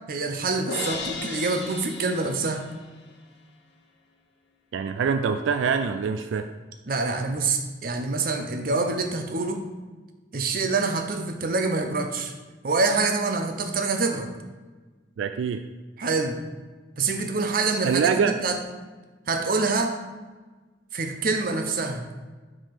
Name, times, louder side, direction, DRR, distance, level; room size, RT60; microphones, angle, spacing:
voice 1, 0.1-2.7 6.9-9.6 10.3-12.3 12.6-14.3 16.0-16.4 17.0-18.6 19.3-20.0 20.9-22.0, right 3 dB, 50° right, 5 dB, 0.6 m, -26 dB
Crash cymbal, 0.7-2.9, left 4 dB, 65° left, 0.8 m, -35 dB
voice 2, 4.7-6.4 15.2-15.6 17.8-18.3, right 6 dB, 80° right, 8 dB, 0.3 m, -24 dB
5.0 x 3.7 x 5.8 m, 1.3 s
head